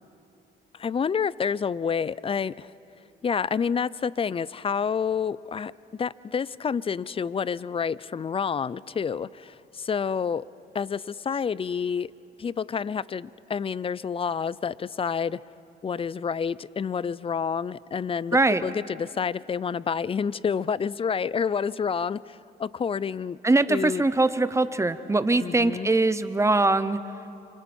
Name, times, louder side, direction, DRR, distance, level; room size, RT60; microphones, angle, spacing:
voice 1, 0.7-2.7 3.2-5.7 6.0-10.5 10.7-12.1 12.4-15.4 15.8-23.4 23.7-24.0 25.4-25.9, left 6 dB, 30° left, 21 dB, 0.4 m, -28 dB
voice 2, 18.3-18.6 23.4-27.0, right 2 dB, 15° right, 13 dB, 0.8 m, -22 dB
28.0 x 25.5 x 4.3 m, 2.8 s
cardioid pair, 90°, 20 cm